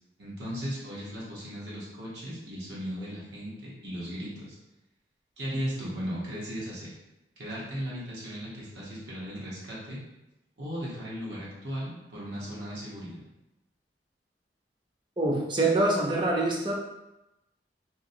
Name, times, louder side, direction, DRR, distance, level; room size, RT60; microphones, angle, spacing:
voice 1, 0.2-4.6 5.4-6.9 7.4-10.0 10.6-13.2, equal, 70° right, -7 dB, 1.0 m, -36 dB
voice 2, 15.2-16.7, right 2 dB, 25° right, -2 dB, 0.5 m, -25 dB
2.8 x 2.7 x 2.6 m, 0.93 s
head